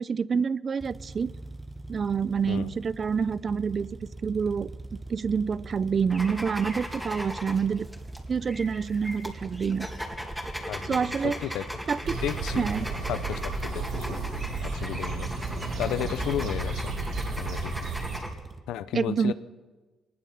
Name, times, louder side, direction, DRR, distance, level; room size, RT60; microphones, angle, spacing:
voice 1, 0.0-1.3 1.9-4.0 4.2-4.7 5.1-7.9 8.3-9.9 10.8-11.4 11.9-12.2 12.6-12.9 18.9-19.3, right 6 dB, 45° right, 18 dB, 0.6 m, -27 dB
sound 1, 0.8-18.6, right 2 dB, 20° right, 1.4 m, -43 dB
sound 2, 6.1-18.3, equal, ahead, 2.6 m, -38 dB
voice 2, 10.7-11.1 11.4-11.7 12.2-12.7 13.1-14.2 14.6-15.3 15.8-16.9 17.4-17.8 18.7-19.3, left 11 dB, 90° left, 13 dB, 0.8 m, -33 dB
sound 3, 12.0-18.2, right 3 dB, 70° right, 5.0 m, -33 dB
22.5 x 20.0 x 5.8 m, 1.3 s
cardioid pair, 90°, 0 cm